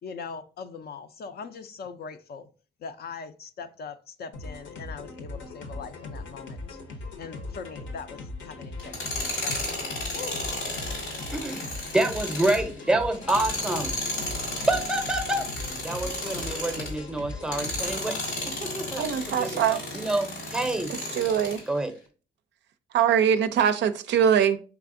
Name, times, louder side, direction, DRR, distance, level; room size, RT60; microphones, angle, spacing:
voice 1, 0.0-2.5 2.8-6.8 7.2-9.9 10.1-10.5, left 5 dB, 50° left, 0.5 m, -41 dB
sound 1, 4.3-18.0, left 2 dB, 70° left, 0.8 m, -40 dB
Tools, 8.8-17.0 17.4-21.6, left 1 dB, 90° left, 1.8 m, -33 dB
voice 2, 11.3-11.6 11.9-14.0 14.7-15.5 15.8-18.2 18.6-19.6 19.9-20.9 21.7-21.9, right 2 dB, 5° right, 0.6 m, -27 dB
voice 3, 19.0-19.8 21.1-21.6 22.9-24.6, right 8 dB, 65° right, 0.4 m, -22 dB
4.7 x 3.3 x 2.5 m
cardioid pair, 90°, 20 cm